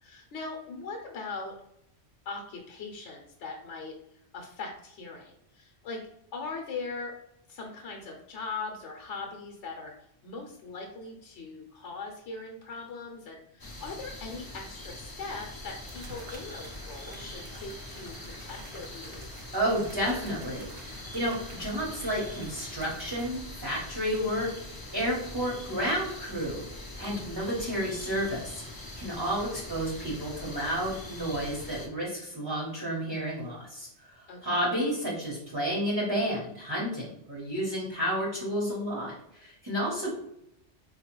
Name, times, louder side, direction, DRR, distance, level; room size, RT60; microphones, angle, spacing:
voice 1, 0.0-1.5 2.2-3.9 4.3-6.0 6.3-7.1 7.5-19.3 34.3-34.6, left 4 dB, 75° left, 1 dB, 0.9 m, -40 dB
sound 1, 13.6-31.9, left 1 dB, 35° left, 0.3 m, -43 dB
sound 2, 14.9-15.0 15.9-23.3, right 2 dB, 55° right, 0.8 m, -49 dB
voice 2, 19.5-24.5 24.9-33.9 34.1-40.1, equal, 20° right, -6 dB, 0.7 m, -31 dB
4.2 x 2.3 x 3.0 m, 0.79 s
omnidirectional pair, 1.2 m